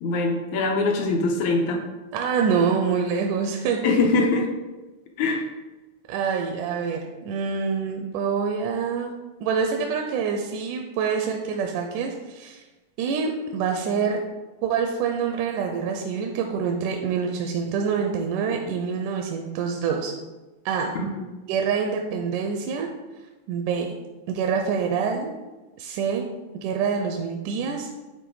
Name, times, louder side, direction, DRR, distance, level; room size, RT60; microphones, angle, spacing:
voice 1, 0.0-1.8 3.8-4.5 5.2-5.5 21.0-21.3, left 3 dB, 75° left, 2 dB, 1.9 m, -22 dB
voice 2, 2.1-3.8 6.1-9.1 9.4-12.6 13.0-14.2 14.6-20.1 20.7-20.9 21.5-22.9 23.5-23.9 24.3-25.3 25.8-26.3 26.6-27.9, right 6 dB, 80° right, 3 dB, 2.0 m, -26 dB
9.2 x 3.2 x 4.7 m, 1.2 s
omnidirectional pair, 3.7 m